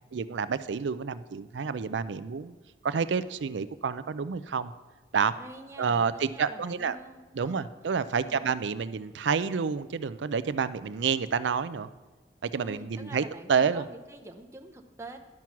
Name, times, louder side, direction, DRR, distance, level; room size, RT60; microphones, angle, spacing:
voice 1, 0.1-2.6 2.8-4.7 5.1-5.3 5.8-7.0 7.3-11.9 12.4-13.8, right 6 dB, 90° right, 14 dB, 0.5 m, -29 dB
voice 2, 5.4-7.7 8.2-8.6 12.6-15.2, right 2 dB, 15° right, 3 dB, 0.7 m, -46 dB
10.5 x 6.1 x 5.8 m, 1.3 s
head